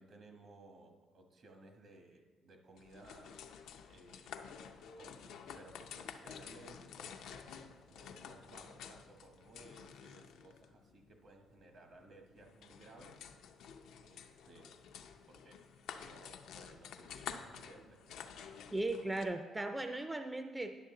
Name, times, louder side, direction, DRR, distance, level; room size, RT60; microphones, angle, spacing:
voice 1, 0.0-3.5 3.9-4.4 4.7-13.2 14.0-15.0 15.3-15.6 15.9-18.8, right 2 dB, 60° right, 4 dB, 1.2 m, -59 dB
sound 1, 2.8-19.3, left 7 dB, 85° left, 0.5 m, -51 dB
voice 2, 18.7-20.8, right 2 dB, 15° right, 7 dB, 0.4 m, -37 dB
10.0 x 6.7 x 3.8 m, 1.4 s
cardioid pair, 90°, 0 cm